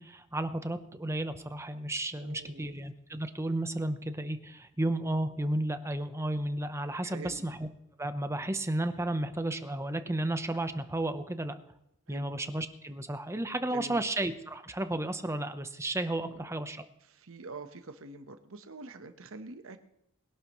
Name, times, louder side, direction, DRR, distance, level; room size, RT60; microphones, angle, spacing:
voice 1, 0.0-7.7 8.0-11.6 12.1-16.8, right 1 dB, 15° right, 9 dB, 0.8 m, -33 dB
voice 2, 2.2-2.8 7.0-7.5 12.1-12.3 13.7-14.0 16.2-16.6 17.1-19.8, right 3 dB, 65° right, 8 dB, 1.1 m, -45 dB
21.5 x 11.5 x 3.1 m, 0.81 s
head